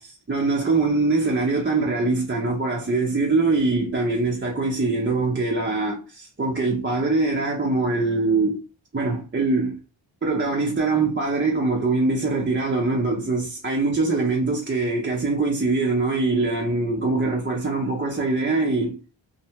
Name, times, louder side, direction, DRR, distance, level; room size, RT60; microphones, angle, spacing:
voice 1, 0.0-8.6 8.9-9.8 10.2-19.0, right 3 dB, 25° right, 0.6 m, -23 dB
2.6 x 2.1 x 2.8 m
wide cardioid pair, 55°, 48 cm